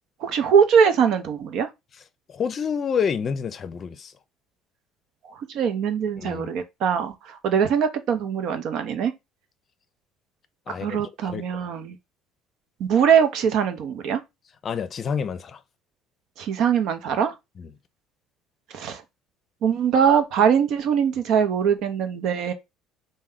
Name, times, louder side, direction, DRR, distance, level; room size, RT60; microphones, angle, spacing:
voice 1, 0.2-1.7 5.3-9.1 10.7-11.9 12.8-14.2 16.4-17.3 18.7-19.0 19.6-22.5, right 7 dB, 65° right, 0.7 m, -22 dB
voice 2, 2.3-4.1 6.2-6.5 10.7-11.7 14.6-15.6 17.6-17.7, left 6 dB, 45° left, 0.5 m, -28 dB
3.1 x 2.2 x 3.6 m
supercardioid pair, 75°, 0 cm